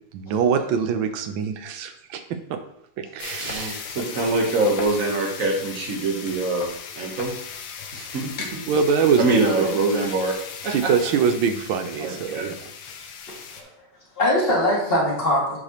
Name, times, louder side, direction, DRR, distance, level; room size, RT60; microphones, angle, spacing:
voice 1, 0.1-2.6 3.0-3.8 8.7-9.7 10.7-12.5, right 6 dB, 90° right, 8 dB, 1.5 m, -24 dB
sound 1, 3.2-13.6, left 6 dB, 90° left, 1.5 m, -37 dB
voice 2, 3.4-6.7 6.9-7.3 7.9-8.6 9.2-10.9 12.0-12.5, right 2 dB, 50° right, 1 dB, 1.3 m, -24 dB
voice 3, 7.8-8.1 13.5-13.7 14.2-15.6, left 1 dB, 30° left, -6 dB, 2.2 m, -22 dB
7.9 x 4.9 x 2.9 m, 0.76 s
omnidirectional pair, 2.1 m